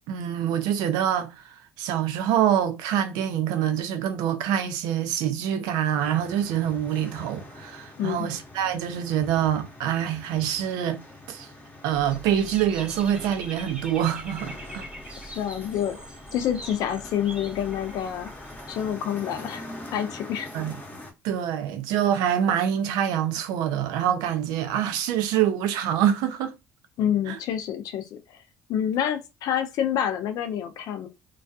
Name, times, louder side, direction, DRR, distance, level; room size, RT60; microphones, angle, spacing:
voice 1, 0.1-11.0 11.3-11.5 11.8-14.9 20.5-20.8 21.2-26.5 27.3-27.4, right 10 dB, 75° right, 0.5 m, -25 dB
sound 1, 6.0-21.1, left 2 dB, 25° left, 0.8 m, -44 dB
Dog / Bird, 11.9-18.9, right 1 dB, 10° right, 0.9 m, -43 dB
voice 2, 15.4-16.0 16.3-18.3 18.7-19.7 19.9-20.5 27.0-28.2 28.7-31.1, left 9 dB, 65° left, 0.5 m, -27 dB
2.3 x 2.2 x 2.6 m
supercardioid pair, 65°, 7 cm